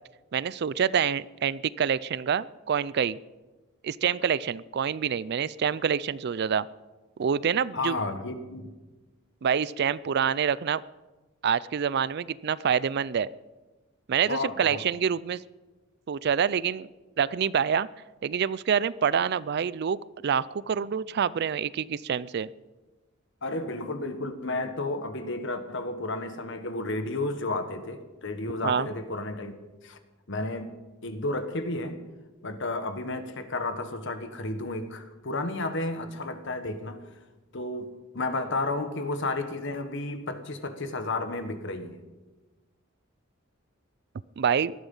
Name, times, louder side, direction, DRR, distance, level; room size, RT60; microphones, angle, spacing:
voice 1, 0.3-3.2 3.8-6.7 7.2-7.9 9.4-10.8 11.4-13.3 14.1-15.4 16.1-16.9 17.2-17.9 18.2-20.0 20.2-22.5 28.6-28.9 44.4-44.7, right 7 dB, 55° right, 20 dB, 0.4 m, -26 dB
voice 2, 7.7-8.7 14.3-14.8 23.4-29.5 29.8-30.0 30.3-30.7 31.0-32.0 32.4-37.0 37.5-42.0, left 2 dB, 65° left, 9 dB, 1.4 m, -32 dB
18.5 x 12.5 x 5.6 m, 1.2 s
head